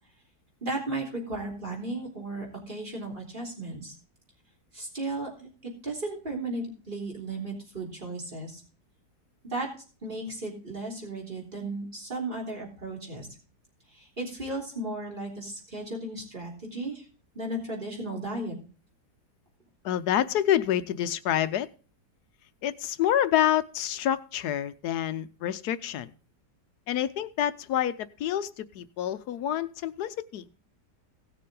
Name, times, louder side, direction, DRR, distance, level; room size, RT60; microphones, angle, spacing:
voice 1, 0.6-3.9 4.7-5.5 5.8-8.6 9.4-9.7 10.0-13.3 13.9-17.0 17.3-18.6, right 2 dB, 30° right, 3.6 m, -35 dB
voice 2, 19.8-21.7 22.6-26.1 26.9-30.5, left 11 dB, 70° left, 1.2 m, -27 dB
17.0 x 6.7 x 3.7 m
omnidirectional pair, 1.8 m